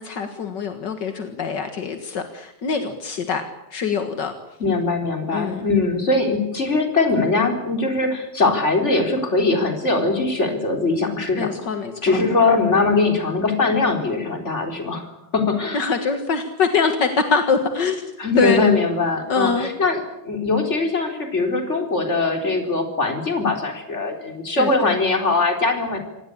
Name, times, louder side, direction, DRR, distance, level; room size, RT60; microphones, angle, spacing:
voice 1, 0.0-3.4 3.7-4.3 5.3-5.7 11.4-12.2 15.7-18.1 18.4-18.6 19.3-19.7 24.6-25.0, left 5 dB, 45° left, 7 dB, 1.4 m, -23 dB
voice 2, 4.6-11.5 12.0-15.8 18.2-20.0 20.2-26.0, left 3 dB, 20° left, 4 dB, 4.1 m, -21 dB
26.5 x 18.5 x 8.6 m, 0.86 s
omnidirectional pair, 4.3 m